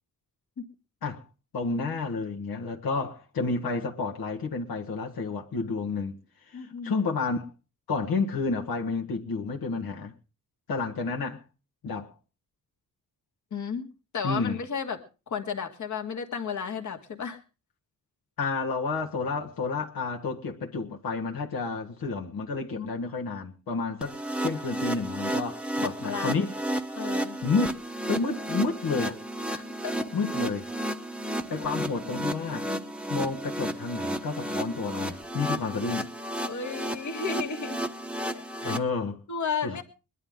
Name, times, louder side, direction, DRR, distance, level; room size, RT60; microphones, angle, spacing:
voice 1, 1.5-6.2 6.5-7.5 7.9-10.1 10.7-11.4 11.8-12.1 14.2-14.6 18.4-26.5 27.4-29.2 30.1-30.7 31.5-32.7 33.1-36.1 38.6-39.2 39.6-39.8, left 4 dB, 75° left, 1.7 m, -30 dB
voice 2, 6.5-7.0 13.5-13.9 14.1-17.4 22.8-22.9 25.8-26.5 27.0-27.4 29.5-30.1 36.4-37.8 38.3-38.8 39.3-39.8, left 6 dB, 50° left, 1.9 m, -34 dB
sound 1, 24.0-38.8, right 1 dB, 5° right, 0.9 m, -32 dB
22.0 x 11.5 x 3.7 m
wide cardioid pair, 150°, 36 cm